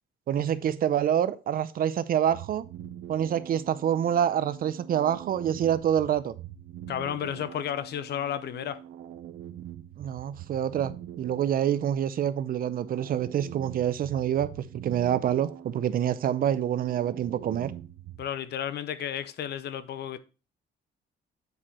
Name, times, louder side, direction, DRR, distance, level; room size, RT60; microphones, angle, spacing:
voice 1, 0.3-2.6 3.1-6.3 10.0-14.5 14.8-17.7, right 10 dB, 50° right, 0.6 m, -26 dB
sound 1, 2.3-18.3, right 11 dB, 75° right, 0.8 m, -44 dB
voice 2, 6.9-8.8 18.2-20.2, left 9 dB, 60° left, 0.7 m, -32 dB
8.1 x 4.9 x 4.1 m
cardioid pair, 160°, 20 cm